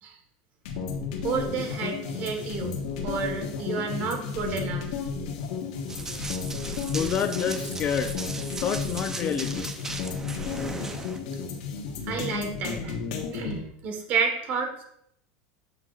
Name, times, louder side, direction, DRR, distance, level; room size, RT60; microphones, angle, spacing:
sound 1, 0.7-13.6, left 5 dB, 75° left, 1.3 m, -33 dB
voice 1, 1.2-2.8 3.0-4.9 12.1-13.0 13.3-14.8, right 5 dB, 50° right, 4 dB, 1.4 m, -30 dB
Run, 5.9-11.2, right 3 dB, 15° right, 0.6 m, -37 dB
voice 2, 6.9-8.1 8.6-9.7, left 7 dB, 35° left, 9 dB, 0.5 m, -28 dB
7.9 x 5.8 x 2.5 m, 0.74 s
supercardioid pair, 125°, 4 cm